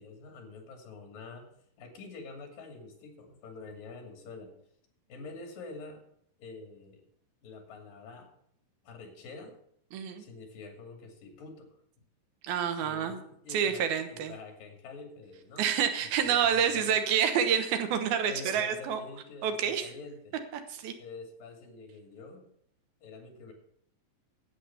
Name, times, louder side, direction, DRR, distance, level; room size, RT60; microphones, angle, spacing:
voice 1, 0.0-1.5 1.8-4.5 5.1-6.0 6.4-7.0 7.4-8.3 8.8-9.6 10.2-11.7 12.8-15.7 16.0-17.0 18.2-20.4 21.0-22.5 23.0-23.5, left 3 dB, 70° left, 3 dB, 4.2 m, -46 dB
voice 2, 9.9-10.2 12.4-13.2 13.5-14.3 15.6-19.0 19.4-19.9 20.8-20.9, right 8 dB, 85° right, 8 dB, 3.1 m, -28 dB
10.0 x 8.4 x 7.1 m, 0.68 s
omnidirectional pair, 4.2 m